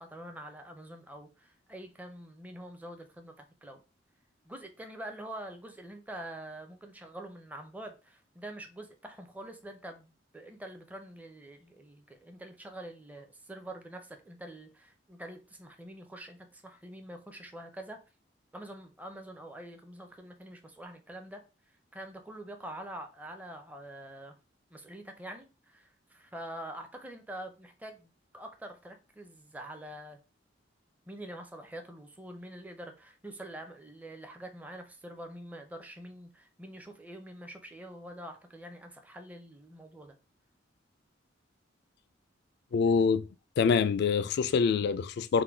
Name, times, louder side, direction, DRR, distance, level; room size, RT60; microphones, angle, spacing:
voice 1, 0.0-3.8 4.5-18.0 18.5-21.4 21.9-24.4 24.7-30.2 31.1-40.2, right 1 dB, 10° right, 0.6 m, -45 dB
voice 2, 42.7-43.3 43.6-45.4, left 5 dB, 60° left, 0.3 m, -25 dB
3.7 x 2.2 x 4.4 m
head